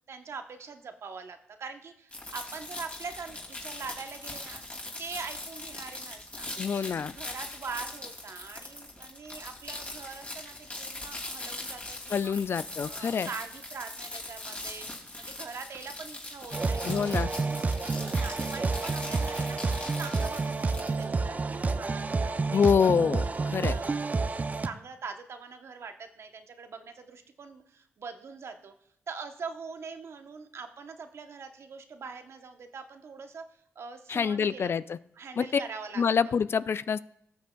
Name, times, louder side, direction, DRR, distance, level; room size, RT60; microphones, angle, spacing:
voice 1, 0.1-4.6 5.0-6.5 6.8-12.4 12.8-14.9 15.1-19.6 20.0-22.9 23.2-28.7 29.1-34.7 35.1-36.4, right 5 dB, 60° right, 6 dB, 0.9 m, -43 dB
sound 1, 2.1-21.0, left 2 dB, 30° left, 2.5 m, -41 dB
voice 2, 6.6-7.1 12.1-13.3 16.8-17.3 22.5-23.8 34.1-34.8 35.4-35.6 36.0-37.0, left 6 dB, 50° left, 16 dB, 0.3 m, -26 dB
sound 2, 16.5-24.7, right 3 dB, 30° right, 0.5 m, -29 dB
18.0 x 6.5 x 2.3 m, 0.75 s
cardioid pair, 60°, 5 cm